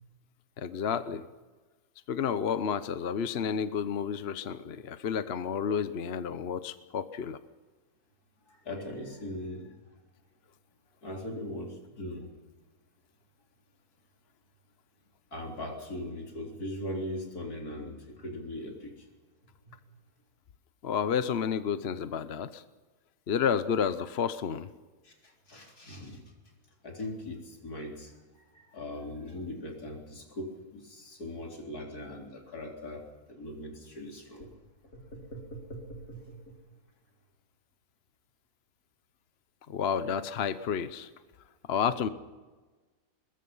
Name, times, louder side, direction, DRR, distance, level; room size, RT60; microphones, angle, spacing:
voice 1, 0.6-1.3 2.1-7.4 20.8-22.6 23.3-24.7 39.7-41.1 41.7-42.1, left 7 dB, 50° left, 12 dB, 0.9 m, -30 dB
voice 2, 8.6-9.7 11.0-12.3 15.3-18.9 25.0-25.1 25.5-26.2 26.8-28.1 28.5-33.0 33.3-34.5 35.3-36.5 41.9-42.1, left 1 dB, 75° left, 0 dB, 4.4 m, -40 dB
22.0 x 21.5 x 5.6 m, 1.3 s
omnidirectional pair, 1.6 m